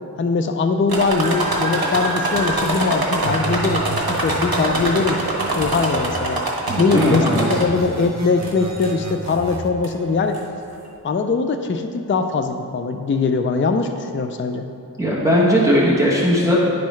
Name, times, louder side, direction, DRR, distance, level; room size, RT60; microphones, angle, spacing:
voice 1, 0.2-5.2 5.5-6.4 6.8-10.4 11.0-14.7, left 4 dB, 35° left, 6 dB, 0.4 m, -21 dB
sound 1, 0.9-7.9 8.4-9.0 9.8-9.9 10.3-10.4, right 2 dB, 80° right, 1.0 m, -24 dB
sound 2, 3.2-6.3 6.7-9.7, right 2 dB, 50° right, 0.7 m, -32 dB
voice 2, 6.7-7.5 15.0-16.6, equal, 10° right, -6 dB, 1.1 m, -18 dB
10.5 x 4.5 x 3.2 m, 2.7 s
wide cardioid pair, 60°, 36 cm